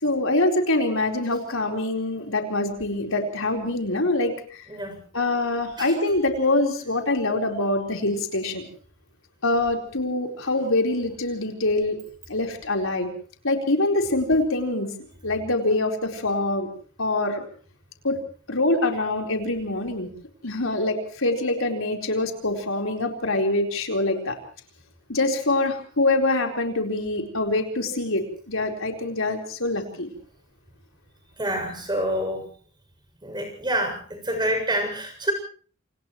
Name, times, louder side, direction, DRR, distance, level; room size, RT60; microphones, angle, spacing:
voice 1, 0.0-4.6 5.1-8.6 9.4-12.0 12.3-13.1 13.4-14.9 15.2-16.7 17.0-17.4 18.0-18.2 18.5-20.1 20.4-24.3 25.1-30.1, left 2 dB, 75° left, 2 dB, 4.4 m, -24 dB
voice 2, 4.7-5.0 5.8-5.9 31.4-32.5 33.2-35.3, right 1 dB, 20° right, 4 dB, 7.3 m, -27 dB
28.5 x 28.0 x 3.2 m, 0.44 s
head